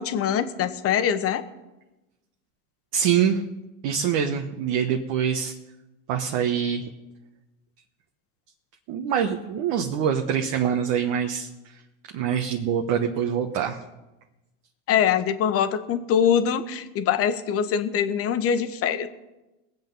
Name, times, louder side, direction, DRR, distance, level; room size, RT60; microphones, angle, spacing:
voice 1, 0.0-1.4 14.9-19.1, left 8 dB, 40° left, 10 dB, 1.2 m, -23 dB
voice 2, 2.9-3.4 3.8-5.5 6.1-6.8 8.9-11.5 12.1-13.8, right 8 dB, 55° right, 3 dB, 1.3 m, -24 dB
21.0 x 8.1 x 5.5 m, 1.0 s
hypercardioid pair, 105°, 37 cm